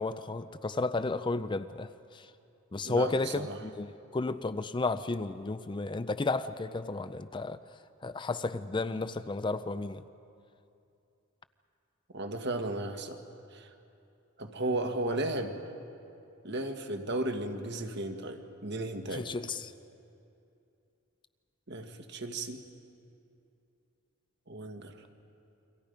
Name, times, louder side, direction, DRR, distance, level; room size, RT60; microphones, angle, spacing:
voice 1, 0.0-2.3 2.7-7.6 8.0-10.0 19.1-19.7, left 3 dB, 25° left, 0.5 m, -33 dB
voice 2, 2.8-3.6 12.1-13.2 13.5-13.7 14.4-15.6 16.4-19.3 21.7-22.6 24.5-24.9, right 2 dB, 55° right, 1.7 m, -34 dB
29.5 x 24.0 x 5.2 m
head